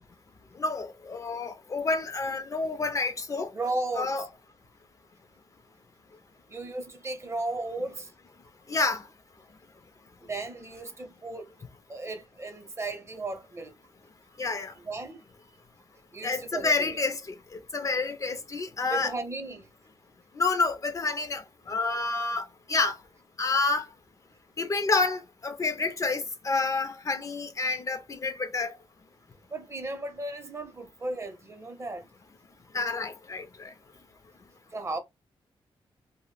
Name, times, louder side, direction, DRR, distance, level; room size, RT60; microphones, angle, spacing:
voice 1, 0.6-3.5 3.9-4.3 8.7-9.0 14.4-14.7 16.2-17.2 17.7-19.1 20.4-23.0 23.4-23.9 24.6-28.7 32.7-33.7, left 3 dB, 35° left, 0.4 m, -29 dB
voice 2, 3.5-4.1 6.5-8.1 10.3-11.5 11.9-13.7 14.8-15.2 16.1-17.0 18.9-19.7 29.5-32.0 34.7-35.0, right 2 dB, 30° right, 0.6 m, -35 dB
2.2 x 2.0 x 3.2 m
wide cardioid pair, 115°, 10 cm